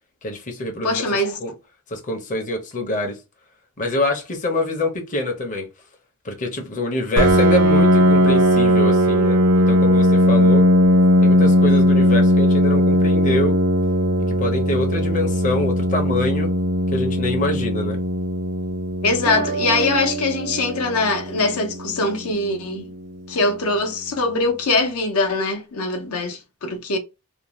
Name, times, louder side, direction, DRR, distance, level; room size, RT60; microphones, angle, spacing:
voice 1, 0.2-1.0 1.4-1.5 1.9-3.1 3.8-5.7 6.2-10.7 11.2-13.6 14.4-16.5 16.9-18.0, left 1 dB, 35° left, 0.6 m, -25 dB
voice 2, 0.8-1.4 19.0-22.9 23.3-27.0, left 2 dB, 75° left, 0.6 m, -22 dB
Piano, 7.2-22.6, equal, 85° right, 0.8 m, -18 dB
sound 1, 19.3-21.9, right 5 dB, 45° right, 0.4 m, -30 dB
2.5 x 2.1 x 3.0 m
head